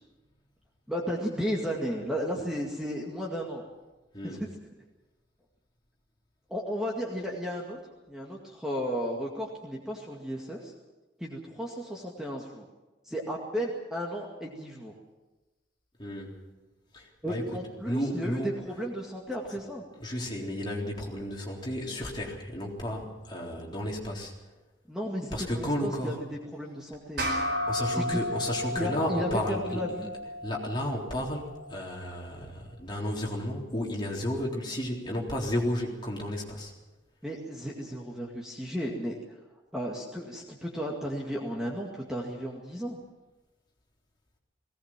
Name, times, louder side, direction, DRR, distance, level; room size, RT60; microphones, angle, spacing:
voice 1, 0.9-3.6 4.2-4.5 6.5-7.8 8.1-10.7 11.2-12.7 13.0-14.9 17.2-19.8 24.9-27.3 27.9-28.2 28.8-30.2 37.2-39.2 39.7-43.0, equal, 5° right, -2 dB, 2.1 m, -34 dB
voice 2, 4.1-4.5 16.0-16.5 16.9-17.5 17.9-18.5 20.0-24.3 25.3-26.2 27.7-29.8 30.4-36.7, left 1 dB, 25° left, -2 dB, 3.8 m, -32 dB
sound 1, 27.2-31.9, left 1 dB, 65° right, 4.5 m, -34 dB
19.5 x 18.0 x 7.5 m, 1.1 s
head